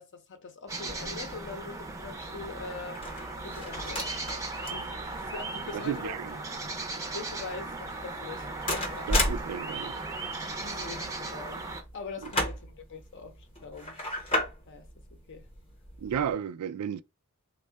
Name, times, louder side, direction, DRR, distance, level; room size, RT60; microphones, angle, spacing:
voice 1, 0.0-3.0 3.4-6.2 7.1-8.5 8.9-9.5 10.6-11.7 11.9-14.0 14.6-14.9 15.3-15.5, left 4 dB, 55° left, 0.7 m, -43 dB
sound 1, 0.7-11.8, right 3 dB, 15° right, 0.5 m, -37 dB
sound 2, 0.9-16.3, left 1 dB, 25° left, 0.8 m, -36 dB
voice 2, 5.7-6.3 9.1-10.0 12.2-12.3 16.0-17.0, right 8 dB, 80° right, 0.3 m, -33 dB
3.6 x 2.2 x 3.3 m
head